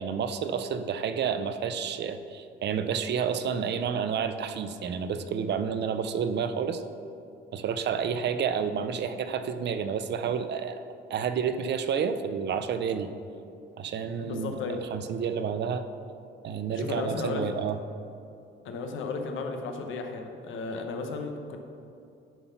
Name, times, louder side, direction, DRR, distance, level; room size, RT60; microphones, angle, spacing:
voice 1, 0.0-6.8 7.5-10.8 11.1-13.1 13.8-15.8 16.4-17.8, right 7 dB, 60° right, 9 dB, 0.6 m, -30 dB
voice 2, 14.2-14.8 16.7-17.5 18.6-21.6, left 4 dB, 80° left, 4 dB, 0.9 m, -34 dB
10.0 x 3.9 x 5.7 m, 2.6 s
cardioid pair, 90°, 20 cm